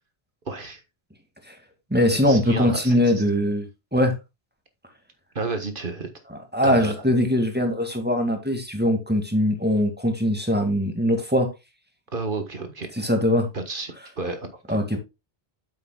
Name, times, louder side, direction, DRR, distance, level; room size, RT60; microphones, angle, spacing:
voice 1, 0.4-0.8 2.2-3.2 5.3-6.1 6.6-7.0 12.1-13.1 13.5-14.8, right 3 dB, 55° right, 1.6 m, -31 dB
voice 2, 1.9-4.2 6.5-11.5 13.0-13.5 14.7-15.0, equal, 10° right, 2.0 m, -21 dB
9.1 x 7.4 x 2.3 m
omnidirectional pair, 1.1 m